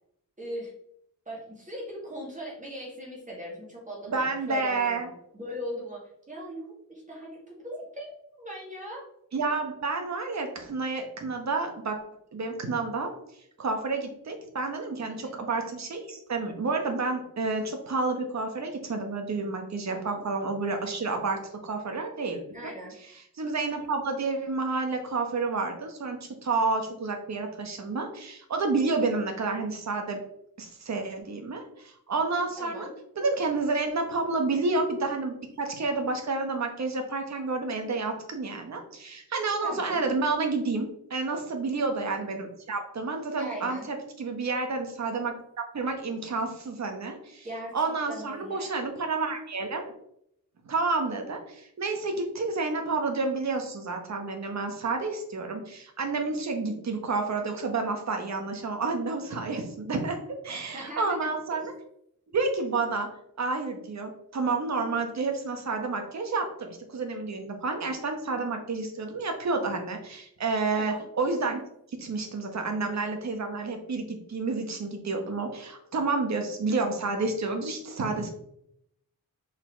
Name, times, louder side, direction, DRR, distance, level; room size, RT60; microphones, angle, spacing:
voice 1, 0.4-0.7 1.3-9.0 15.1-15.4 19.9-20.2 22.5-23.0 32.6-32.9 39.6-40.0 43.3-43.9 47.4-48.7 60.7-61.6 70.7-71.1, equal, 20° right, -4 dB, 2.3 m, -40 dB
voice 2, 4.1-5.1 9.3-12.0 12.3-13.1 13.6-22.4 23.4-30.2 30.6-32.9 33.2-45.3 45.7-47.5 47.7-49.8 50.6-60.2 60.4-61.7 62.3-63.1 63.4-71.6 71.9-78.3, right 3 dB, 50° right, 4 dB, 1.1 m, -30 dB
5.4 x 4.5 x 4.5 m, 0.74 s
wide cardioid pair, 165°, 35 cm